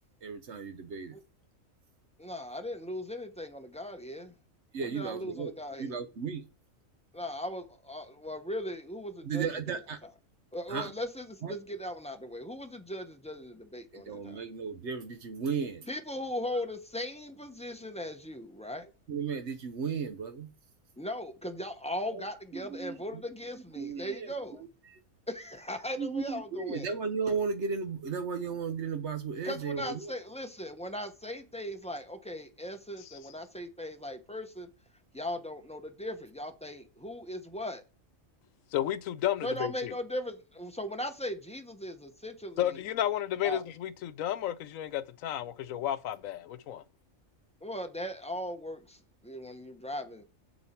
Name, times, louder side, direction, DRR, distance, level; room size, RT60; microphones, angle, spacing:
voice 1, 0.2-1.2 4.7-5.5 5.8-6.5 9.2-10.0 10.7-10.9 11.4-11.5 13.9-15.9 19.1-20.5 22.1-22.3 22.5-23.2 23.8-24.3 24.9-25.0 26.0-30.1, right 5 dB, 60° right, 1.1 m, -35 dB
voice 2, 2.2-4.3 4.8-5.9 7.1-9.5 10.5-14.4 15.9-18.9 21.0-24.6 25.3-26.9 29.4-34.7 35.1-37.8 39.4-42.8 43.4-43.6 47.6-50.2, left 1 dB, 5° left, 0.7 m, -38 dB
voice 3, 38.7-39.9 42.6-46.8, left 11 dB, 80° left, 1.0 m, -32 dB
7.1 x 7.1 x 4.4 m
omnidirectional pair, 1.4 m